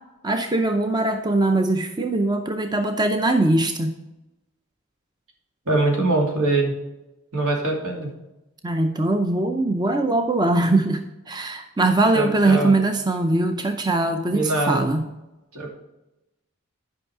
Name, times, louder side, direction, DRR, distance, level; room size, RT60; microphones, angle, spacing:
voice 1, 0.2-4.0 8.6-15.0, right 2 dB, 20° right, 6 dB, 0.5 m, -21 dB
voice 2, 5.7-6.8 7.3-8.1 12.1-12.7 14.3-14.8 15.5-15.7, right 2 dB, 80° right, -1 dB, 2.7 m, -23 dB
10.5 x 5.5 x 4.7 m, 0.97 s
head